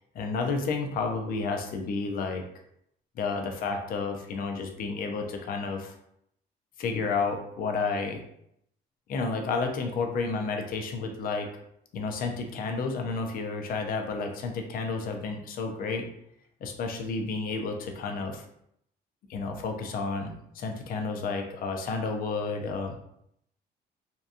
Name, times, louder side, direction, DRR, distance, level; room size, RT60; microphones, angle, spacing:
voice 1, 0.1-2.4 3.2-5.9 6.8-8.2 9.1-11.5 11.9-16.1 16.6-18.4 19.3-23.0, left 4 dB, 60° left, 4 dB, 0.5 m, -31 dB
2.8 x 2.3 x 2.5 m, 0.73 s
cardioid pair, 110°, 17 cm